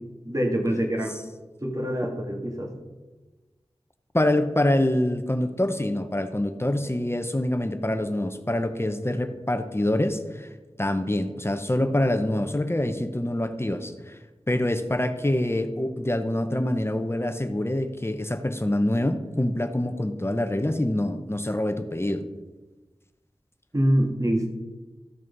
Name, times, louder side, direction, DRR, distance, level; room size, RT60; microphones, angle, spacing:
voice 1, 0.3-1.2 1.6-2.7 23.7-24.5, equal, 30° right, 1 dB, 2.3 m, -25 dB
voice 2, 4.1-10.5 10.8-14.2 14.5-22.2, left 1 dB, 25° left, 8 dB, 0.9 m, -25 dB
14.0 x 6.3 x 5.4 m, 1.2 s
wide cardioid pair, 55°, 11 cm